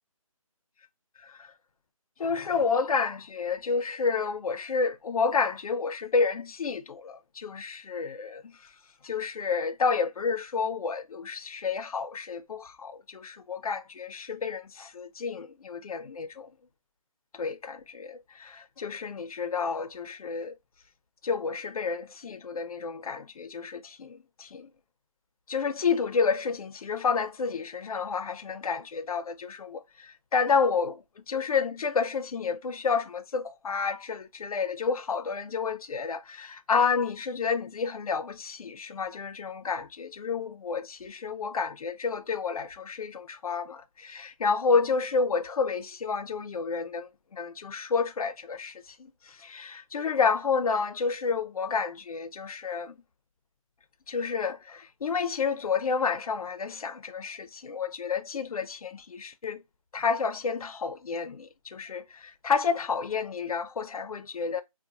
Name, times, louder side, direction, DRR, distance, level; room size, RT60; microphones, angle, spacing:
voice 1, 1.2-1.5 2.2-8.5 9.0-16.5 17.3-20.5 21.2-24.7 25.5-53.0 54.1-59.6 59.9-64.6, left 5 dB, 85° left, 0.5 m, -30 dB
2.6 x 2.1 x 2.7 m
hypercardioid pair, 175°, 18 cm